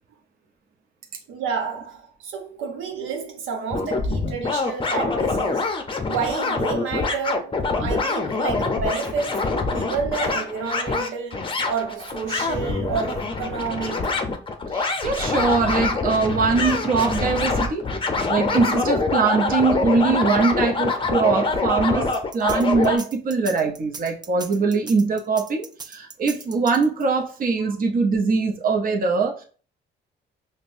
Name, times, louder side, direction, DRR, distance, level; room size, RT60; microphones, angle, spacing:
voice 1, 1.3-5.8 6.0-9.4 9.7-14.1, right 5 dB, 80° right, 0.8 m, -30 dB
sound 1, 3.7-23.0, left 3 dB, 25° left, 0.6 m, -25 dB
voice 2, 14.7-17.8 18.3-29.4, right 4 dB, 45° right, 0.7 m, -22 dB
sound 2, 22.1-27.2, right 4 dB, 20° right, 0.3 m, -39 dB
5.2 x 2.1 x 2.5 m
cardioid pair, 90°, 20 cm